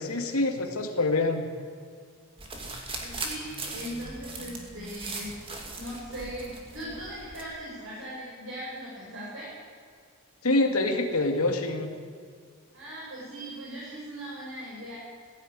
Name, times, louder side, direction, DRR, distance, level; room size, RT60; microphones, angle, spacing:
voice 1, 0.0-1.5 10.4-11.9, left 2 dB, 80° left, 4 dB, 2.4 m, -26 dB
sound 1, 2.4-7.4, right 3 dB, 25° right, 2.6 m, -39 dB
voice 2, 3.0-9.5 12.7-15.0, equal, 60° right, -6 dB, 5.8 m, -39 dB
17.5 x 16.5 x 9.7 m, 2.1 s
head